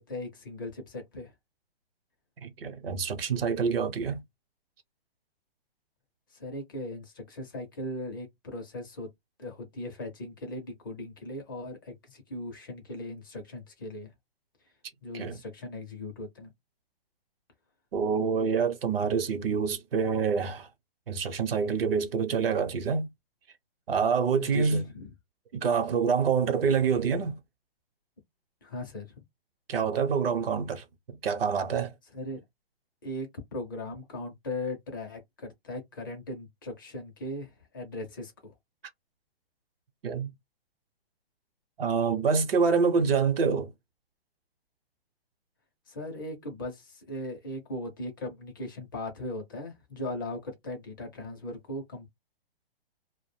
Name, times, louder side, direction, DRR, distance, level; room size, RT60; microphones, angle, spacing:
voice 1, 0.0-1.3 6.3-9.1 9.4-14.1 15.0-16.5 24.4-25.1 28.6-29.1 32.1-32.4 33.0-38.5 45.9-52.1, left 1 dB, 20° left, 0.5 m, -38 dB
voice 2, 2.4-4.2 15.1-15.4 17.9-20.7 21.1-23.1 23.9-24.8 25.5-27.4 29.7-31.9 40.0-40.3 41.8-43.7, right 5 dB, 65° right, 0.8 m, -26 dB
2.3 x 2.1 x 3.1 m
hypercardioid pair, 160°, 31 cm